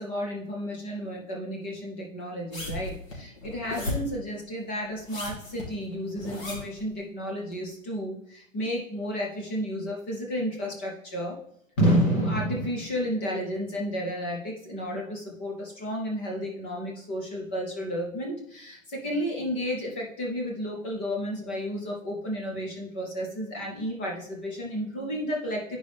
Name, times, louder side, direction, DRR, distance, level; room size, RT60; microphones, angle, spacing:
voice 1, 0.0-11.4 11.8-25.8, equal, 10° left, -1 dB, 0.4 m, -31 dB
sound 1, 2.5-4.2 5.0-6.8 7.5-7.6, left 2 dB, 80° left, 3.2 m, -35 dB
9.7 x 5.1 x 3.3 m, 0.74 s
hypercardioid pair, 150°, 40 cm